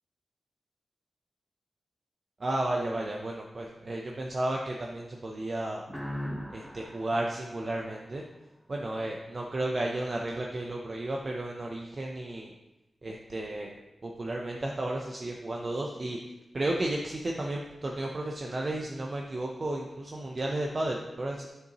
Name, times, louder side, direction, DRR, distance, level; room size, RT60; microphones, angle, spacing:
voice 1, 2.4-5.8 6.5-8.2 8.7-12.5 13.0-13.7 14.0-16.2 16.5-21.5, right 1 dB, 35° right, 0 dB, 0.6 m, -33 dB
sound 1, 5.9-8.6, equal, ahead, 0.9 m, -40 dB
10.0 x 6.7 x 3.0 m, 1.0 s
wide cardioid pair, 150°, 0 cm